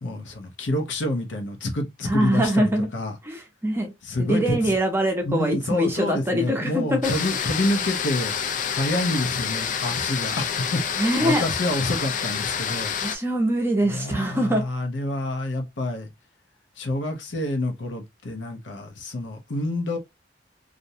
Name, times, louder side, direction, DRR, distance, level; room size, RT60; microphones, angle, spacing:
voice 1, 0.0-3.1 4.0-4.7 5.2-8.3 8.8-10.4 10.7-12.9 13.9-16.1 16.8-20.0, left 1 dB, 90° left, 0.7 m, -28 dB
voice 2, 2.1-2.9 3.2-3.9 4.2-7.1 11.0-11.4 13.0-14.6, right 1 dB, 15° right, 0.6 m, -23 dB
sound 1, 7.0-13.2, left 7 dB, 45° left, 0.3 m, -28 dB
2.5 x 2.1 x 2.7 m
head